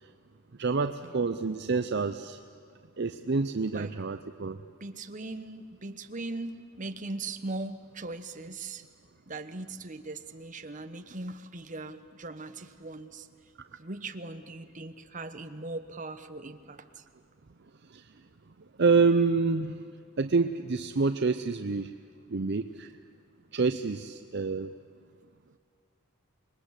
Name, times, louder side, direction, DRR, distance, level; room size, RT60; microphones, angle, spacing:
voice 1, 0.6-2.4 3.0-4.6 17.9-18.1 18.8-19.9 20.2-21.9 22.3-22.9 23.5-24.7, right 4 dB, 55° right, 9 dB, 0.6 m, -27 dB
voice 2, 4.8-8.8 9.3-13.3 13.8-17.0, right 2 dB, 35° right, 8 dB, 1.2 m, -39 dB
26.5 x 21.5 x 8.2 m, 2.2 s
head